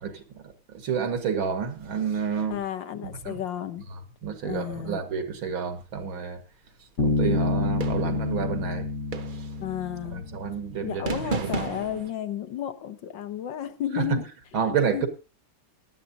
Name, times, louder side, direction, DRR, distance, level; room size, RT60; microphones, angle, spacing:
voice 1, 0.0-2.6 3.0-3.4 3.9-6.4 7.0-8.9 9.4-9.5 10.1-11.5 13.9-14.2 14.5-15.1, right 6 dB, 85° right, 2.5 m, -30 dB
voice 2, 2.5-3.9 4.4-5.0 9.6-10.3 10.8-14.2 14.7-15.1, left 10 dB, 70° left, 1.7 m, -32 dB
Bass guitar, 7.0-10.7, left 3 dB, 45° left, 1.5 m, -28 dB
sound 1, 7.8-8.3 9.1-9.6 11.1-12.1, right 5 dB, 60° right, 0.5 m, -31 dB
17.5 x 11.5 x 2.7 m
omnidirectional pair, 2.1 m